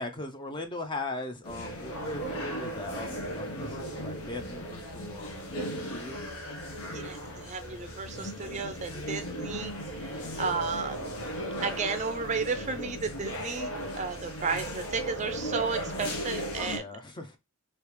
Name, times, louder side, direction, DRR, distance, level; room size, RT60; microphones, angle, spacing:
voice 1, 0.0-5.5 5.9-6.3 6.8-7.0 10.1-10.4 16.6-17.4, left 2 dB, 20° left, 0.5 m, -39 dB
sound 1, 1.4-16.8, equal, 80° left, 1.0 m, -36 dB
voice 2, 6.9-9.7 10.0-11.1 11.6-16.8, right 5 dB, 30° right, 0.4 m, -33 dB
3.2 x 2.8 x 3.1 m
head